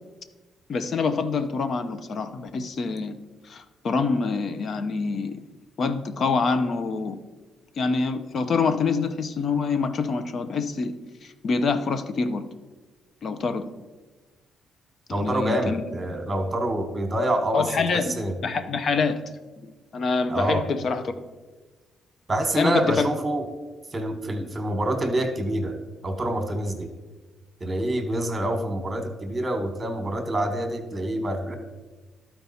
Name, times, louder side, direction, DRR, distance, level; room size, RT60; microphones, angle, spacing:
voice 1, 0.7-3.1 3.4-5.4 5.8-7.2 7.8-11.0 11.2-12.4 13.2-13.7 15.1-15.8 17.5-19.2 19.9-21.1 22.6-23.1, left 4 dB, 55° left, 10 dB, 0.7 m, -26 dB
voice 2, 15.1-17.7 17.9-18.3 20.3-20.6 22.3-23.5 23.9-25.7 26.0-26.9 27.6-31.5, right 1 dB, 25° right, 6 dB, 1.3 m, -26 dB
12.0 x 4.5 x 4.2 m, 1.3 s
cardioid pair, 90°, 0 cm